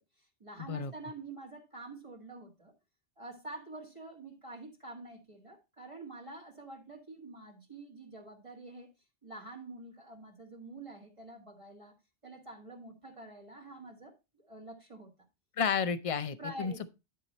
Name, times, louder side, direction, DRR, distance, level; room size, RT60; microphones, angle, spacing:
voice 1, 0.2-2.7 3.2-8.9 9.2-11.9 12.2-15.1 16.4-16.9, right 2 dB, 25° right, 1.9 m, -47 dB
voice 2, 15.6-16.9, left 6 dB, 40° left, 0.5 m, -32 dB
11.0 x 4.8 x 4.1 m
omnidirectional pair, 1.2 m